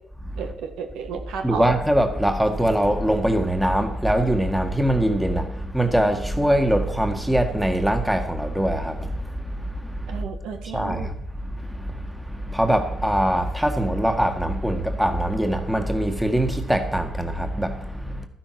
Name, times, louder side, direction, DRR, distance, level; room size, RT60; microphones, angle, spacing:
voice 1, 0.4-1.7 10.1-11.1, right 6 dB, 90° right, 1.8 m, -33 dB
voice 2, 1.4-10.2 10.7-11.1 11.4-18.3, right 1 dB, 5° right, 1.8 m, -23 dB
12.0 x 10.5 x 6.0 m
cardioid pair, 90°, 0 cm